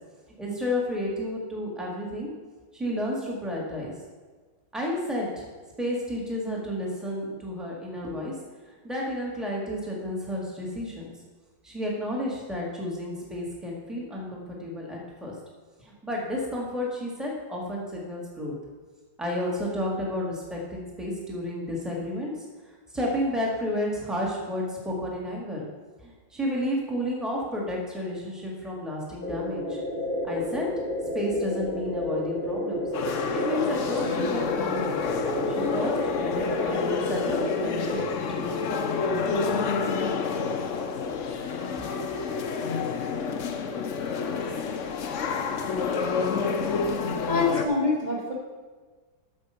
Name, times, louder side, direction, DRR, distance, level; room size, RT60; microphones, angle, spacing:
voice 1, 0.4-2.3 2.7-3.9 4.7-5.5 5.8-8.3 8.8-11.1 11.6-15.3 15.8-18.5 19.2-22.3 22.9-25.6 26.0-29.8 30.2-30.7 31.1-32.9 33.3-35.0 35.5-38.0 38.3-38.7 39.1-39.7 41.1-41.2 41.8-41.9, left 1 dB, ahead, -3 dB, 1.7 m, -31 dB
sound 1, 29.2-38.1, left 1 dB, 35° left, 1.2 m, -31 dB
sound 2, 32.9-47.7, left 5 dB, 60° left, 0.8 m, -29 dB
voice 2, 47.3-48.3, left 3 dB, 25° right, -7 dB, 1.3 m, -25 dB
8.2 x 6.9 x 5.7 m, 1.4 s
omnidirectional pair, 2.0 m